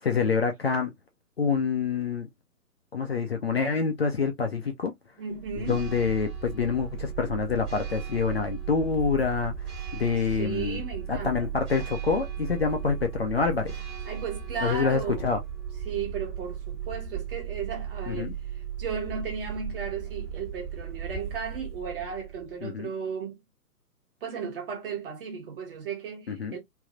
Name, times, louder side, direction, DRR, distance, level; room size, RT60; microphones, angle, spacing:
voice 1, 0.0-0.9 1.4-2.3 2.9-4.9 5.7-9.5 9.9-10.8 11.1-13.7 14.6-15.4 18.1-18.3 22.6-22.9 26.3-26.6, left 5 dB, 40° left, 0.5 m, -26 dB
voice 2, 5.2-5.9 10.4-11.5 14.0-15.3 15.8-23.4 24.2-26.6, right 6 dB, 35° right, 1.3 m, -35 dB
Church bell, 5.3-22.6, right 8 dB, 20° right, 1.4 m, -36 dB
3.2 x 2.7 x 2.4 m
figure-of-eight pair, 130°, 48 cm